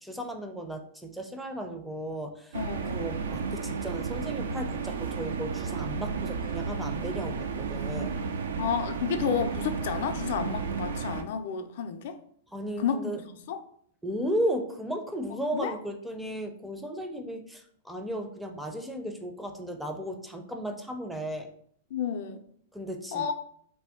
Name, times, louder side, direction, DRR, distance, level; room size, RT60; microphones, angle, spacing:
voice 1, 0.0-2.6 2.9-8.1 12.5-13.2 14.0-21.5 22.7-23.3, equal, ahead, 4 dB, 0.4 m, -35 dB
voice 2, 2.5-3.1 8.6-12.2 12.8-13.6 15.5-15.7 21.9-22.4 23.1-23.3, left 7 dB, 60° left, 8 dB, 0.4 m, -31 dB
sound 1, 2.5-11.2, right 5 dB, 75° right, 0.3 m, -33 dB
2.6 x 2.2 x 3.4 m, 0.63 s
hypercardioid pair, 115°, 0 cm